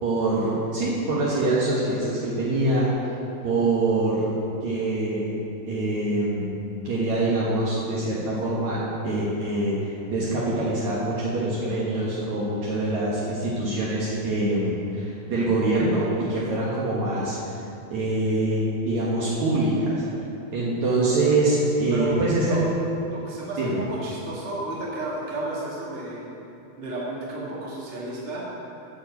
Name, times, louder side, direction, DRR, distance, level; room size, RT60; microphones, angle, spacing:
voice 1, 0.0-3.1 3.4-4.3 4.6-5.3 5.7-6.6 6.8-17.4 17.9-20.0 20.5-22.6 23.6-23.8, right 2 dB, 85° right, -7 dB, 1.6 m, -24 dB
voice 2, 23.1-26.2 26.8-28.4, right 2 dB, 60° right, -6 dB, 0.6 m, -33 dB
14.0 x 5.0 x 7.8 m, 2.8 s
omnidirectional pair, 5.6 m